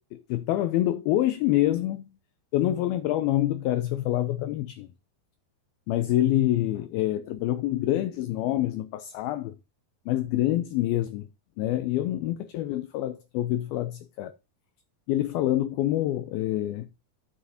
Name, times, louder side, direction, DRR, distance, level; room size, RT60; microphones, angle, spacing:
voice 1, 0.1-2.1 2.5-4.9 5.9-9.6 10.1-11.3 11.6-14.3 15.1-16.9, left 14 dB, 90° left, 2.1 m, -26 dB
10.5 x 8.5 x 2.7 m
omnidirectional pair, 5.1 m